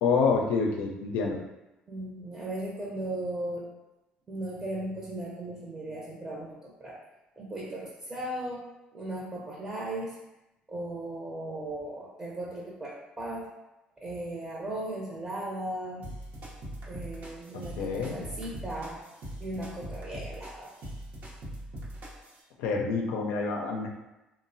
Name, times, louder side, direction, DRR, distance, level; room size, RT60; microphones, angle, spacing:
voice 1, 0.0-1.4 17.8-18.2 22.6-23.9, left 4 dB, 85° left, 1 dB, 0.4 m, -27 dB
voice 2, 1.9-3.7 4.3-7.0 7.4-10.2 10.7-13.5 14.0-16.0 16.9-19.0 19.4-20.7, right 1 dB, 25° right, -4 dB, 0.6 m, -37 dB
sound 1, 16.0-22.4, right 1 dB, 60° right, 0.7 m, -42 dB
3.0 x 2.1 x 2.6 m, 0.98 s
supercardioid pair, 85°, 3 cm